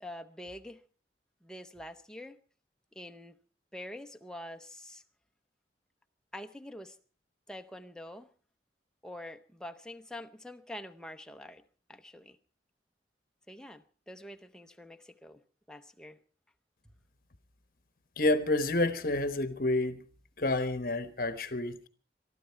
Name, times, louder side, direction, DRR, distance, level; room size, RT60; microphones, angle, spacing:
voice 1, 0.0-0.8 1.4-2.4 2.9-3.4 3.7-5.0 6.3-7.0 7.5-8.3 9.0-11.6 11.9-12.4 13.5-15.4 15.7-16.2 16.8-16.9, left 1 dB, 5° left, 7 dB, 0.7 m, -46 dB
voice 2, 18.2-20.0 20.4-21.9, left 2 dB, 50° left, 12 dB, 1.1 m, -29 dB
23.0 x 13.0 x 4.5 m, 0.39 s
head